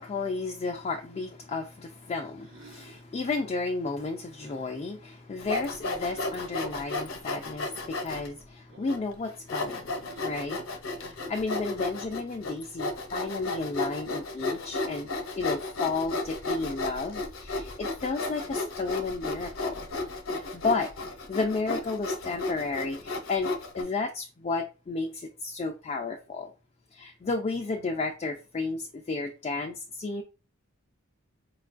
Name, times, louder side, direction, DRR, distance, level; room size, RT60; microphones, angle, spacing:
voice 1, 0.0-9.9 10.2-10.6 11.0-15.1 15.4-19.8 20.3-20.9 21.3-26.5 26.9-30.2, left 3 dB, 30° left, 0.3 m, -32 dB
sound 1, 2.4-3.1 4.3-4.7 6.1-6.5 8.7-9.1 9.9-10.5, right 2 dB, 65° right, 0.9 m, -53 dB
Sawing, 5.4-8.3 8.9-9.0 9.5-23.8, left 2 dB, 75° left, 0.7 m, -33 dB
4.5 x 2.3 x 2.4 m
head